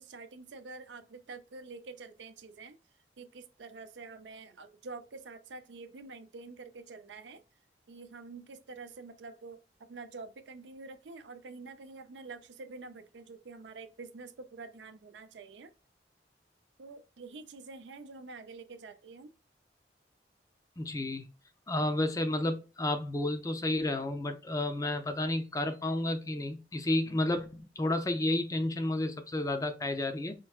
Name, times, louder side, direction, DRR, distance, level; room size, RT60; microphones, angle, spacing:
voice 1, 0.0-2.8 3.2-7.4 7.9-9.6 9.9-15.7 16.8-19.3, right 3 dB, 90° right, 0.5 m, -47 dB
voice 2, 20.8-21.2 21.7-30.3, left 1 dB, 20° left, 0.5 m, -31 dB
4.5 x 2.6 x 2.3 m
head